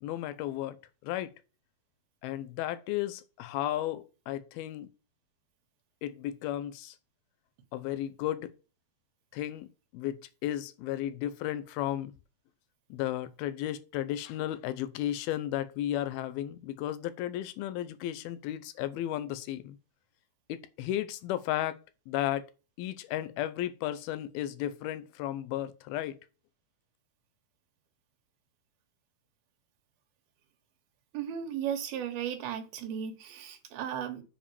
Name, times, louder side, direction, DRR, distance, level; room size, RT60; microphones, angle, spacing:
voice 1, 0.0-1.3 2.2-4.9 6.0-7.0 7.7-8.5 9.3-9.7 9.9-12.1 12.9-19.8 20.5-21.8 22.1-22.5 22.8-26.2, left 13 dB, 80° left, 2.6 m, -34 dB
voice 2, 31.1-34.2, right 9 dB, 80° right, 3.1 m, -35 dB
7.3 x 5.1 x 6.7 m
omnidirectional pair, 4.3 m